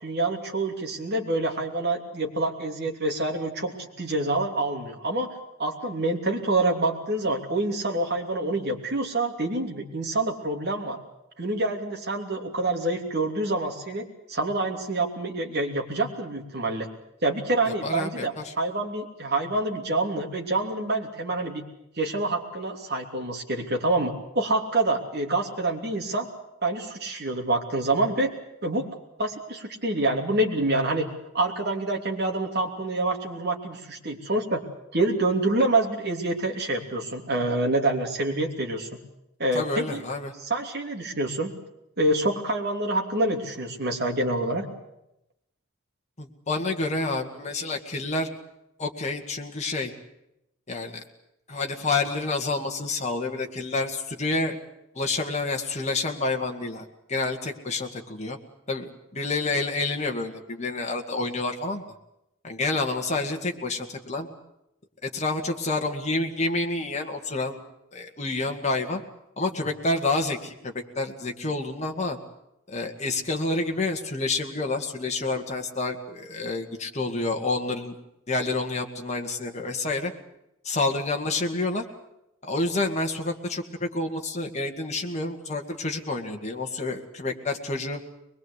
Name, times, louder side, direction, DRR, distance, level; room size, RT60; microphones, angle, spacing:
voice 1, 0.0-5.3 5.6-11.0 11.4-14.0 14.3-16.9 17.2-21.6 22.0-26.3 26.6-28.3 28.6-28.9 29.2-34.6 34.9-38.9 39.4-40.0 40.4-41.5 42.0-44.6, right 2 dB, 50° right, 2 dB, 3.1 m, -27 dB
voice 2, 17.7-18.5 39.5-40.3 46.2-48.3 48.8-49.9 50.7-51.0 51.5-54.6 55.0-58.4 58.7-61.8 62.4-64.3 65.1-67.6 67.9-69.0 69.4-72.2 72.7-78.0 78.3-80.1 80.6-81.8 82.4-88.0, left 3 dB, 30° left, 2 dB, 2.1 m, -28 dB
23.0 x 21.0 x 8.3 m, 0.84 s
head